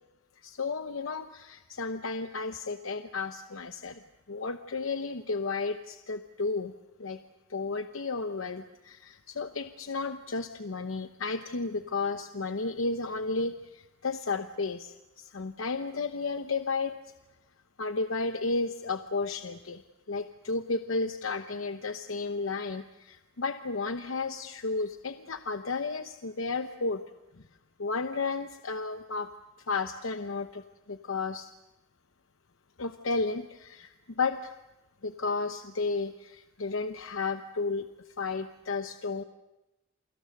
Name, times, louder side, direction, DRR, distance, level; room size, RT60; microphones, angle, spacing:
voice 1, 0.4-4.0 4.3-6.7 7.0-7.2 7.5-17.0 17.8-19.8 20.1-27.0 27.8-29.3 29.7-31.5 32.8-34.6 35.0-39.2, left 3 dB, 75° left, 8 dB, 0.9 m, -33 dB
29.0 x 24.0 x 6.6 m, 1.0 s
head